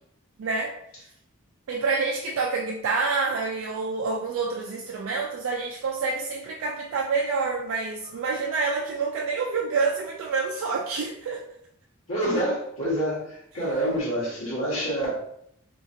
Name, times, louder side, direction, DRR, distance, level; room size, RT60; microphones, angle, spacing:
voice 1, 0.4-0.7 1.7-11.4, right 4 dB, 70° right, 0 dB, 0.3 m, -27 dB
voice 2, 12.1-15.1, right 1 dB, 85° left, -7 dB, 1.4 m, -27 dB
2.8 x 2.7 x 2.5 m, 0.72 s
head